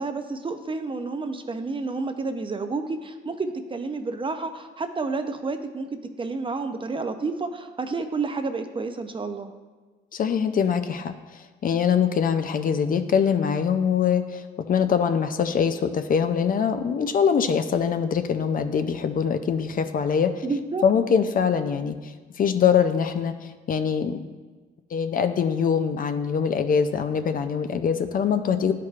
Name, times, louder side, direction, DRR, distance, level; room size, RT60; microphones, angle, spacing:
voice 1, 0.0-9.5 20.4-20.8, right 3 dB, 25° right, 8 dB, 0.5 m, -30 dB
voice 2, 10.1-20.4 20.8-24.3 24.9-28.7, left 7 dB, 45° left, 8 dB, 0.4 m, -23 dB
10.5 x 4.6 x 2.4 m, 1.3 s
cardioid pair, 90°, 20 cm